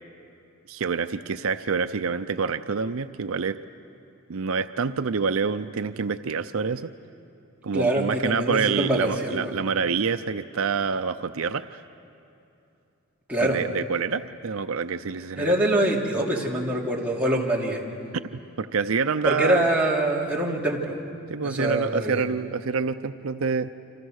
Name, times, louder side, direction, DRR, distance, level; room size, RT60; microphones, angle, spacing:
voice 1, 0.7-3.6 4.3-6.9 7.6-11.8 13.4-15.5 18.6-19.6 21.3-23.7, right 5 dB, 75° right, 10 dB, 0.6 m, -27 dB
voice 2, 7.7-9.5 13.3-13.6 15.4-17.8 19.2-21.0 21.4-22.2, right 1 dB, 5° right, -4 dB, 2.9 m, -24 dB
29.0 x 26.0 x 6.5 m, 2.7 s
head